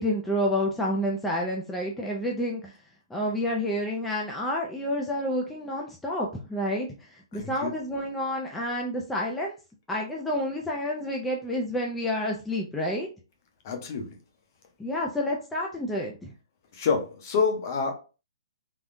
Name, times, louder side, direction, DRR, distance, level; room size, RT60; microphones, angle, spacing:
voice 1, 0.0-2.7 3.1-9.5 9.9-13.1 14.8-16.3, equal, 5° left, -2 dB, 0.3 m, -29 dB
voice 2, 7.3-7.7 13.6-14.1 16.7-17.9, left 5 dB, 40° left, 4 dB, 0.8 m, -27 dB
3.4 x 2.2 x 2.5 m, 0.33 s
hypercardioid pair, 165°, 3 cm